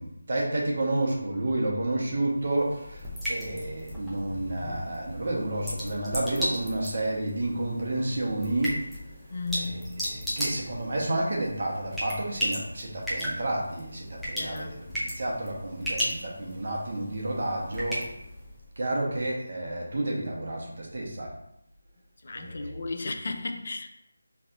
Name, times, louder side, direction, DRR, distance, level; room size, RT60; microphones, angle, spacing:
voice 1, 0.0-8.8 9.5-9.8 10.0-18.1 18.8-21.3 22.3-22.7, right 1 dB, 55° right, -2 dB, 1.0 m, -30 dB
sound 1, 2.3-18.7, equal, ahead, 0.6 m, -36 dB
voice 2, 9.3-9.9 14.4-14.7 22.2-23.9, left 3 dB, 50° left, 6 dB, 0.4 m, -34 dB
4.2 x 3.2 x 2.5 m, 0.80 s
figure-of-eight pair, 170°, 0 cm